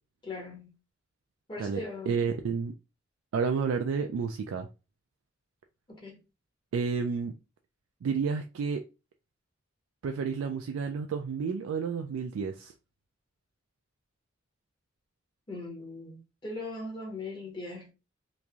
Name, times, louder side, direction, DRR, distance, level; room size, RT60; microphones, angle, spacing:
voice 1, 0.2-0.7 1.5-2.2 5.9-6.2 15.5-17.9, left 2 dB, 25° left, 0.8 m, -39 dB
voice 2, 1.6-2.7 3.3-4.7 6.7-7.3 8.0-8.8 10.0-12.7, right 5 dB, 85° right, 0.3 m, -30 dB
3.0 x 2.5 x 2.3 m
head